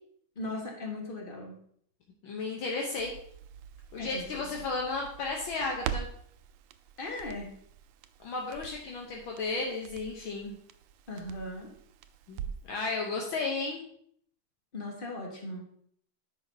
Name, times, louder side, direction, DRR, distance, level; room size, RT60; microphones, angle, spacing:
voice 1, 0.3-1.6 4.0-4.4 7.0-7.5 11.1-11.7 14.7-15.7, left 2 dB, 30° left, 0 dB, 1.4 m, -38 dB
voice 2, 2.2-3.1 3.9-6.1 8.2-10.6 12.3-13.8, left 3 dB, 70° left, 0 dB, 1.7 m, -34 dB
Crackle, 3.0-12.8 13.1-13.2, right 9 dB, 85° right, 1.5 m, -44 dB
9.8 x 6.0 x 2.8 m, 0.64 s
omnidirectional pair, 2.4 m